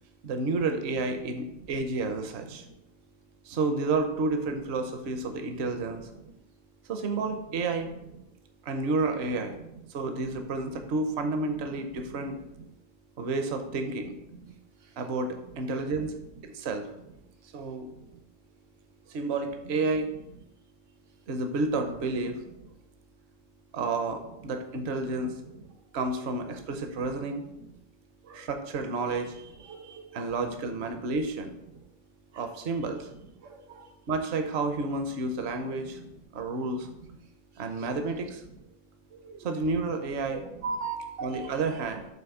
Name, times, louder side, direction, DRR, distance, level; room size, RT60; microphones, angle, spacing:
voice 1, 0.2-2.6 3.5-6.0 6.9-7.9 8.6-9.6 9.9-12.4 13.2-14.1 15.0-16.2 16.4-16.9 17.5-17.9 19.1-20.1 21.3-22.4 23.7-25.4 25.9-27.4 28.3-31.5 32.4-33.1 34.1-36.0 36.3-36.9 37.6-38.4 39.4-40.4 41.2-42.1, right 3 dB, 65° right, 6 dB, 1.0 m, -30 dB
voice 2, 33.4-33.8 39.2-39.4 40.3-41.4, right 4 dB, 85° right, 3 dB, 1.2 m, -37 dB
7.7 x 3.0 x 5.9 m, 0.85 s
omnidirectional pair, 1.3 m